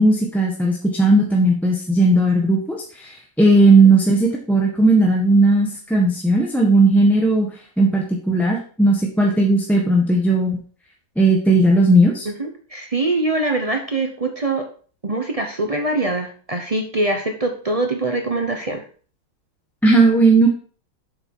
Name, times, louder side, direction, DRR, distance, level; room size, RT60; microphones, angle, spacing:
voice 1, 0.0-7.5 7.8-10.6 11.2-12.2 19.8-20.5, right 2 dB, ahead, -2 dB, 1.0 m, -16 dB
voice 2, 12.3-14.7 15.0-18.8, right 2 dB, 50° right, 4 dB, 0.4 m, -23 dB
7.9 x 6.6 x 4.7 m, 0.42 s
omnidirectional pair, 2.2 m